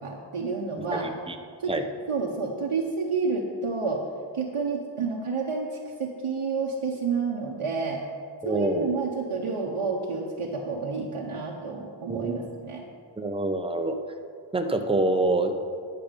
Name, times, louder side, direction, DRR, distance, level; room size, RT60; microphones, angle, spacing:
voice 1, 0.0-1.1 1.6-1.7 2.1-4.0 4.3-8.0 8.4-12.8, right 4 dB, 90° right, -3 dB, 1.0 m, -30 dB
voice 2, 0.8-1.4 1.7-1.8 8.4-8.9 12.1-12.4 13.2-14.0 14.5-15.5, right 2 dB, 10° right, 5 dB, 0.8 m, -26 dB
10.5 x 6.6 x 5.2 m, 2.1 s
wide cardioid pair, 70°, 49 cm